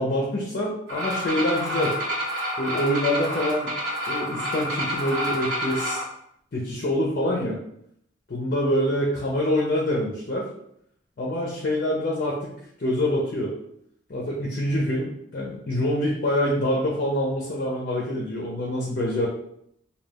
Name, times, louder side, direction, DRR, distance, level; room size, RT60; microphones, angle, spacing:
voice 1, 0.0-2.0 2.6-3.7 4.1-6.0 6.5-7.6 8.3-10.5 11.2-13.5 14.1-19.3, left 1 dB, 50° left, -3 dB, 0.5 m, -25 dB
sound 1, 0.9-6.0, equal, 65° right, 1.3 m, -28 dB
2.3 x 2.2 x 3.3 m, 0.71 s
head